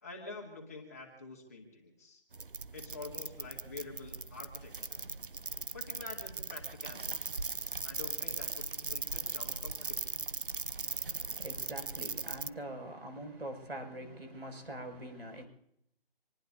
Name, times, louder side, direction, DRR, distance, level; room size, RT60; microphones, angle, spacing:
voice 1, 0.0-2.2 2.7-5.0 5.7-7.5 7.8-10.2, left 3 dB, 15° left, 2.4 m, -48 dB
sound 1, 2.3-12.5, right 4 dB, 60° right, 0.8 m, -39 dB
voice 2, 10.8-15.5, right 1 dB, 75° right, 6.1 m, -44 dB
27.5 x 19.5 x 2.7 m
figure-of-eight pair, 180°, 30 cm